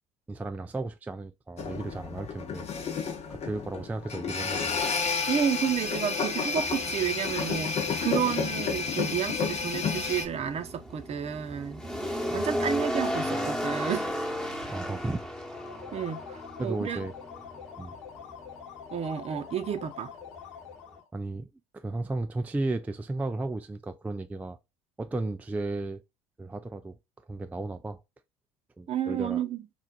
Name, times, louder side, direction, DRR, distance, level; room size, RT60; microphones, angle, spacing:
voice 1, 0.3-2.7 3.3-4.8 12.3-12.6 14.7-15.2 16.6-17.1 17.8-18.0 21.1-24.6 25.0-26.0 26.4-28.0 28.8-29.4, right 2 dB, 10° right, 0.3 m, -34 dB
sound 1, 1.6-10.3, left 5 dB, 45° left, 0.9 m, -31 dB
voice 2, 5.3-11.8 12.3-14.1 15.9-17.1 18.9-20.1 28.9-29.6, right 8 dB, 40° right, 0.7 m, -31 dB
sound 2, 6.5-21.0, equal, 5° left, 1.1 m, -36 dB
sound 3, 15.4-21.1, left 8 dB, 90° left, 0.6 m, -45 dB
4.4 x 2.4 x 2.3 m
hypercardioid pair, 70°, 15 cm